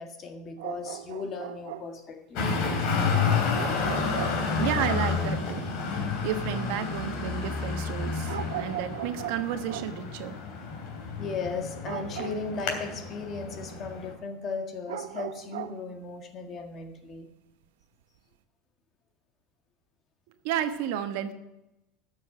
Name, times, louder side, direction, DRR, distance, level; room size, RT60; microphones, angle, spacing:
voice 1, 0.0-2.5 11.2-17.3, left 4 dB, 35° left, 1.7 m, -36 dB
sound 1, 0.6-2.0 3.5-5.1 8.2-10.0 11.8-12.5 14.9-15.8, right 12 dB, 90° right, 0.7 m, -38 dB
Traffic noise roadway noise, 2.4-14.1, left 5 dB, 60° left, 3.1 m, -30 dB
voice 2, 4.6-5.7 6.2-10.4 20.4-21.3, right 10 dB, 70° right, 1.2 m, -32 dB
12.5 x 6.9 x 7.7 m
supercardioid pair, 120°, 0 cm